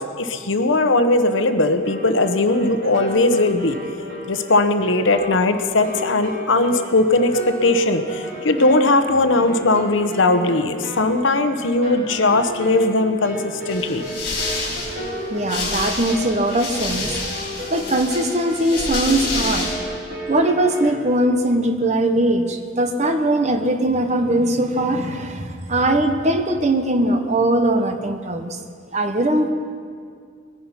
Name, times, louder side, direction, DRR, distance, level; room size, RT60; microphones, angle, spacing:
voice 1, 0.0-3.8 4.3-14.0, left 2 dB, 80° left, 9 dB, 0.9 m, -19 dB
sound 1, 1.7-20.9, equal, 65° right, 3.5 m, -33 dB
sound 2, 13.7-19.7, left 3 dB, 55° left, 5.1 m, -28 dB
voice 2, 15.3-17.1 17.7-19.7 20.3-28.6 28.9-29.5, right 1 dB, 35° right, 6 dB, 1.0 m, -20 dB
21.0 x 10.0 x 5.7 m, 2.2 s
head